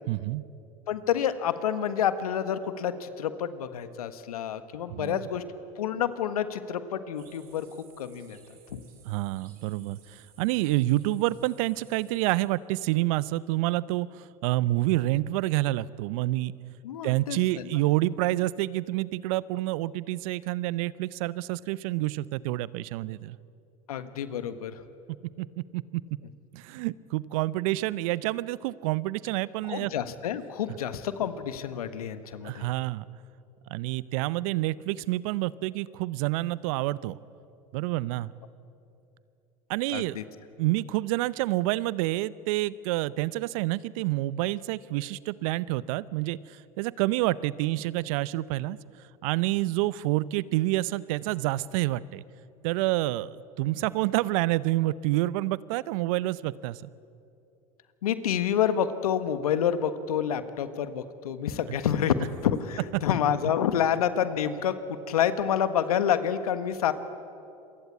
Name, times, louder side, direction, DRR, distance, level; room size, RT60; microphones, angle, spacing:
voice 1, 0.1-0.4 4.9-5.2 9.0-16.5 17.0-23.4 25.4-26.0 26.5-29.9 32.4-33.1 33.7-37.2 37.7-38.3 39.7-40.2 40.6-48.8 49.2-52.2 52.6-56.9, right 17 dB, 65° right, 19 dB, 0.8 m, -28 dB
voice 2, 0.9-5.4 5.8-8.4 8.7-8.8 16.8-17.8 23.9-24.8 29.7-32.7 39.9-40.2 58.0-66.9, left 9 dB, 80° left, 11 dB, 1.5 m, -28 dB
sound 1, 7.2-12.5, right 7 dB, 50° right, 6.6 m, -58 dB
28.0 x 23.0 x 8.5 m, 2.7 s
hypercardioid pair, 80°, 19 cm